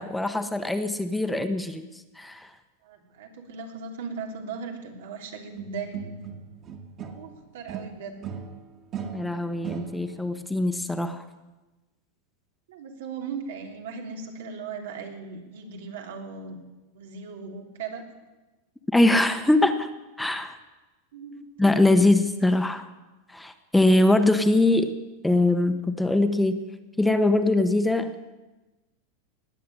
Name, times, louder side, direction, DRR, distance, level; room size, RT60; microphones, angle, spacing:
voice 1, 0.0-1.9 2.2-2.5 9.1-11.2 18.9-19.9 20.2-20.6 21.6-22.9 23.3-24.9 25.2-26.6 27.0-28.1, left 2 dB, 5° left, 8 dB, 1.0 m, -22 dB
voice 2, 2.8-6.1 7.2-8.2 12.7-16.6 16.9-18.1 21.1-21.4, right 5 dB, 85° right, 3 dB, 3.1 m, -38 dB
sound 1, 5.6-7.4 7.7-10.3, right 7 dB, 30° right, 1.7 m, -38 dB
19.5 x 7.6 x 9.8 m, 1.1 s
supercardioid pair, 140°, 0 cm